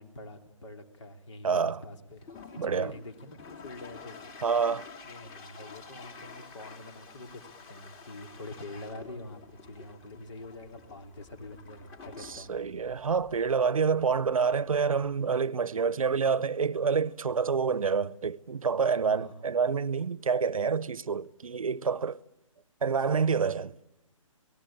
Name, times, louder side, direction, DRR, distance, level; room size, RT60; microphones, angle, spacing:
voice 1, 0.0-2.3 2.6-4.2 5.0-12.5 19.1-19.4, left 2 dB, 60° left, 3.5 m, -45 dB
voice 2, 1.4-1.8 2.6-2.9 4.4-4.9 12.2-22.2 22.8-23.8, right 5 dB, 80° right, 0.8 m, -27 dB
Toilet flush, 2.1-15.2, left 4 dB, 20° left, 2.8 m, -50 dB
28.0 x 19.0 x 9.0 m
hypercardioid pair, 150°, 17 cm